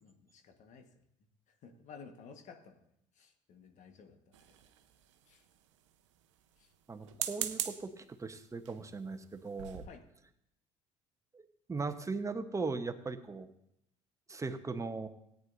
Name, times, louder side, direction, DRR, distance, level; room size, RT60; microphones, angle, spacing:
voice 1, 0.0-0.9 1.5-2.8 3.1-4.4 5.3-5.4 6.6-6.7 7.1-7.3 9.8-10.0, left 6 dB, 55° left, 6 dB, 1.6 m, -54 dB
sound 1, 4.3-5.1 7.0-7.9 8.6-8.9 9.3-9.4 9.6-9.9, right 11 dB, 80° right, 0.7 m, -39 dB
voice 2, 6.9-9.8 11.3-13.5 14.3-15.1, right 4 dB, 20° right, 7 dB, 1.1 m, -39 dB
17.0 x 9.4 x 2.7 m, 0.75 s
hypercardioid pair, 60°, 15 cm